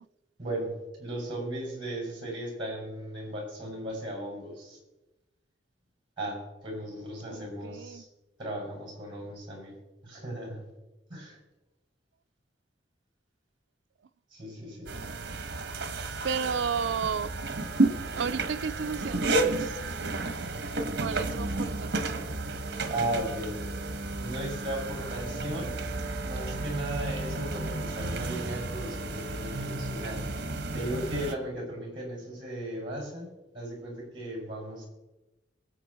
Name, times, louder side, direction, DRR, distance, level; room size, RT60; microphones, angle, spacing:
voice 1, 0.4-0.7 1.0-4.8 6.2-8.1 8.4-9.7 10.0-10.6 11.1-11.4 14.3-14.9 22.9-23.6 24.2-25.8 26.2-30.3 30.7-33.3 33.5-34.9, right 1 dB, 30° right, 6.0 m, -36 dB
voice 2, 7.3-8.0 14.9-15.4 16.2-17.3 18.1-20.5 21.0-22.2, right 6 dB, 75° right, 0.4 m, -34 dB
sound 1, 14.9-31.4, right 2 dB, 60° right, 1.2 m, -32 dB
23.5 x 8.0 x 4.2 m
head